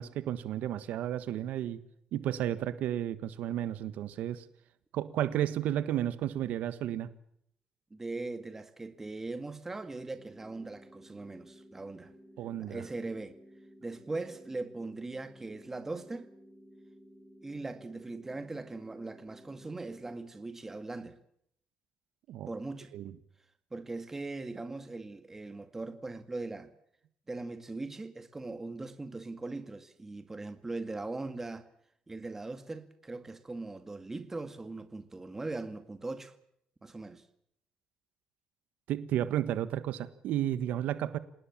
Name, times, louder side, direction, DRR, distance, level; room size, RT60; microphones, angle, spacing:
voice 1, 0.0-1.8 2.1-4.4 4.9-7.1 12.4-12.8 22.3-22.5 22.9-23.1 38.9-41.2, right 11 dB, 70° right, 1.5 m, -32 dB
voice 2, 7.9-12.1 12.6-13.4 13.8-16.3 17.4-21.2 22.5-22.9 23.7-26.7 27.3-31.7 32.1-36.3 36.8-37.2, right 3 dB, 15° right, 2.1 m, -40 dB
sound 1, 10.2-20.2, equal, 10° left, 4.2 m, -56 dB
27.0 x 19.0 x 7.4 m
cardioid pair, 155°, 3 cm